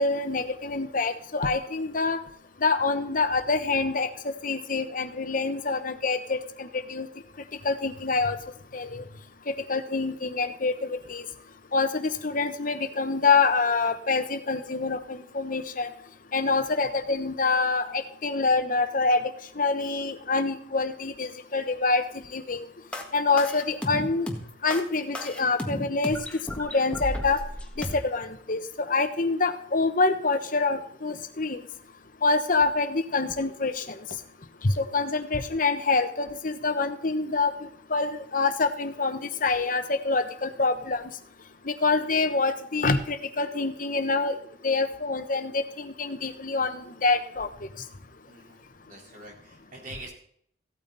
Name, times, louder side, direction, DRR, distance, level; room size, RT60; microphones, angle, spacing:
voice 1, 0.0-2.2 2.6-7.1 7.6-8.4 8.7-9.0 9.5-11.2 11.7-15.9 16.3-19.3 19.6-22.0 22.3-22.6 23.1-24.3 24.6-26.2 26.6-27.4 27.8-31.6 32.2-34.0 34.6-37.5 37.9-41.1 41.6-44.4 44.6-47.5, left 3 dB, 50° left, 9 dB, 1.1 m, -26 dB
sound 1, 22.9-27.9, left 1 dB, 5° left, 1.7 m, -33 dB
voice 2, 48.3-50.1, right 2 dB, 45° right, -1 dB, 4.0 m, -46 dB
16.0 x 8.8 x 4.1 m, 0.65 s
head